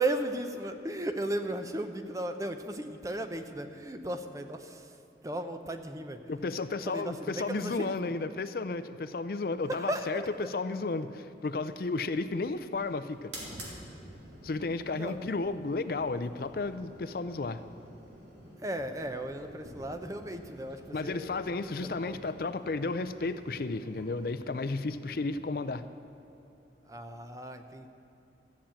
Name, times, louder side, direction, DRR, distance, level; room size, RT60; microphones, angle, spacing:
voice 1, 0.0-4.9 5.2-6.2 6.8-8.1 9.7-10.1 14.9-15.2 18.6-21.3 21.8-22.2 26.9-27.9, right 1 dB, 20° right, 7 dB, 0.6 m, -35 dB
voice 2, 6.3-13.3 14.4-17.6 20.9-25.9, left 3 dB, 55° left, 11 dB, 0.5 m, -33 dB
sound 1, 11.5-26.8, right 1 dB, 80° right, 3.0 m, -51 dB
13.5 x 7.2 x 8.8 m, 3.0 s
head